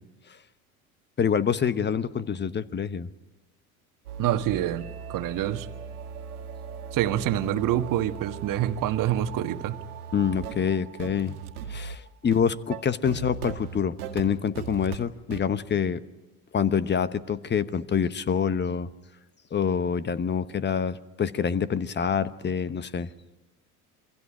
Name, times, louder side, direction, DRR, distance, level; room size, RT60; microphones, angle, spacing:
voice 1, 1.2-3.1 10.1-11.4 11.7-16.0 16.5-18.9 19.5-23.1, left 7 dB, 25° left, 15 dB, 1.1 m, -26 dB
sound 1, 4.0-15.0 15.3-15.4, right 8 dB, 80° right, 2.0 m, -39 dB
voice 2, 4.2-5.7 6.9-9.8, right 12 dB, 45° right, 9 dB, 1.5 m, -26 dB
28.0 x 23.5 x 4.9 m, 1.1 s
hypercardioid pair, 70°, 44 cm